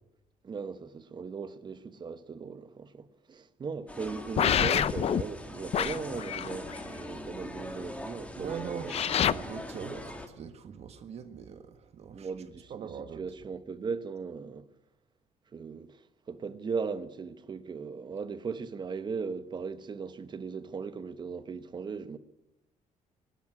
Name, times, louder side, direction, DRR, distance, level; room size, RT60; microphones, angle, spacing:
voice 1, 0.4-9.0 12.1-14.7 15.5-16.0 16.3-22.2, right 5 dB, 35° right, 1.2 m, -38 dB
sound 1, 3.9-10.3, left 1 dB, 10° left, 2.1 m, -42 dB
sound 2, 4.4-5.2 5.7-6.8 8.9-9.3, left 9 dB, 50° left, 0.6 m, -27 dB
voice 2, 8.3-12.3 12.7-13.2, right 7 dB, 50° right, 1.6 m, -41 dB
21.5 x 12.5 x 9.8 m
cardioid pair, 145°, 14 cm